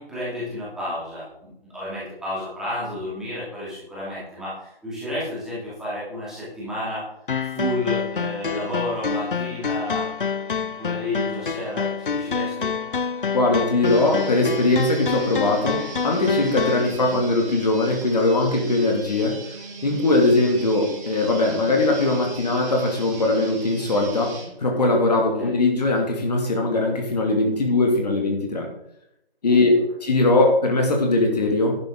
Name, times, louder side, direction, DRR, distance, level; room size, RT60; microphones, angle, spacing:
voice 1, 0.0-7.0 7.5-10.1 10.6-12.7 25.4-25.5 29.4-29.7, left 1 dB, ahead, -10 dB, 2.6 m, -31 dB
sound 1, 7.3-16.9, left 6 dB, 60° left, 0.6 m, -27 dB
voice 2, 13.3-19.4 19.8-28.7 29.4-31.7, left 2 dB, 40° left, 1 dB, 2.7 m, -20 dB
sound 2, 13.8-24.5, right 4 dB, 15° right, 2.0 m, -40 dB
11.0 x 10.5 x 3.9 m, 0.79 s
figure-of-eight pair, 165°, 30 cm